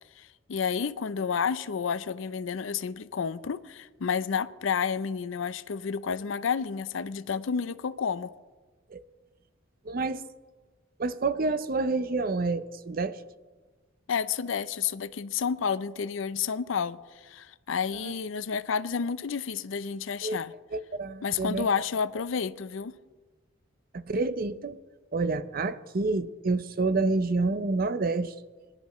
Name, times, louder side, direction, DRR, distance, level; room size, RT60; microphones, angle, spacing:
voice 1, 0.2-8.3 14.1-20.5 21.2-22.9, left 6 dB, 75° left, 0.5 m, -30 dB
voice 2, 9.9-10.2 11.0-13.2 18.0-18.1 20.2-20.4 20.7-21.7 23.9-24.8 25.1-28.3, right 3 dB, 45° right, 0.5 m, -28 dB
23.5 x 10.5 x 3.1 m
head